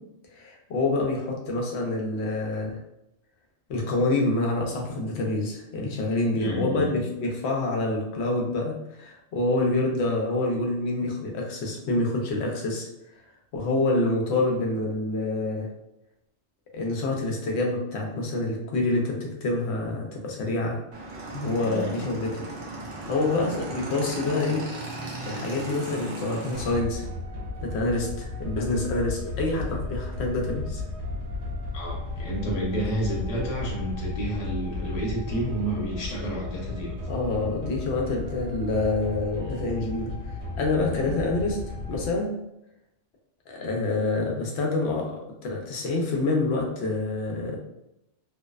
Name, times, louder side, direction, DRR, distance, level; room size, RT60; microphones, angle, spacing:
voice 1, 0.3-2.8 3.7-12.9 13.5-15.7 16.7-20.8 21.3-22.3 23.1-24.6 25.2-27.1 27.6-30.8 37.1-41.6 41.9-42.3 43.5-45.1 45.4-47.6, left 2 dB, 70° left, 0 dB, 0.8 m, -27 dB
voice 2, 6.4-6.9 21.6-22.0 31.7-37.0 39.4-39.6 41.0-41.1, right 1 dB, 40° left, -3 dB, 0.7 m, -31 dB
Motorcycle / Engine, 20.9-26.8, right 2 dB, 75° right, 0.9 m, -36 dB
sound 1, 26.5-42.1, left 2 dB, 60° right, 1.2 m, -34 dB
2.6 x 2.0 x 2.3 m, 0.85 s
omnidirectional pair, 1.2 m